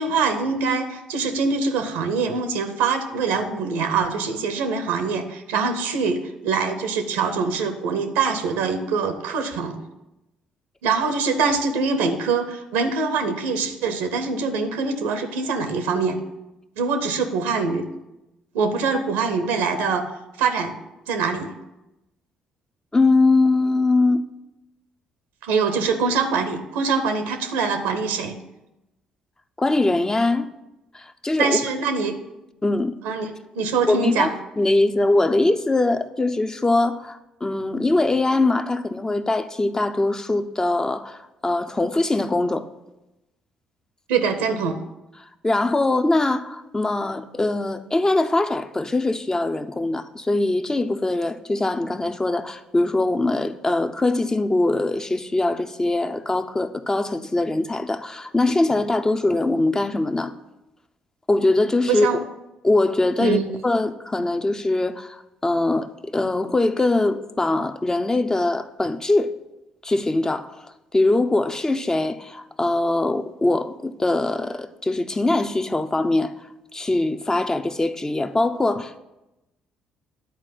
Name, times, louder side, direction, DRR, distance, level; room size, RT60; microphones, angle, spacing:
voice 1, 0.0-9.8 10.8-16.2 16.8-17.9 18.5-20.1 20.4-20.8 21.1-21.5 25.4-28.3 31.4-32.2 33.0-34.3 44.1-44.8 61.9-62.2 63.2-63.4, right 5 dB, 70° right, 0.8 m, -24 dB
voice 2, 22.9-24.2 29.6-30.5 30.9-31.6 32.6-33.0 33.9-42.7 45.4-60.3 61.3-62.1 62.6-69.3 69.8-70.7 70.9-76.3 76.7-79.0, left 2 dB, 20° left, 0.7 m, -22 dB
10.5 x 4.4 x 7.6 m
figure-of-eight pair, 45°, 3 cm